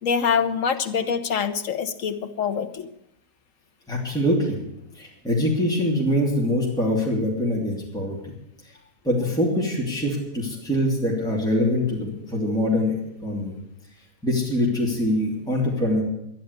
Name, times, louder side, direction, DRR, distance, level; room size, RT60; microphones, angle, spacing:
voice 1, 0.0-2.9, left 6 dB, 65° left, 8 dB, 1.4 m, -25 dB
voice 2, 3.9-4.6 4.9-8.3 9.0-13.5 14.2-16.0, left 1 dB, 5° left, -4 dB, 2.8 m, -24 dB
12.0 x 11.0 x 8.1 m, 0.82 s
omnidirectional pair, 1.5 m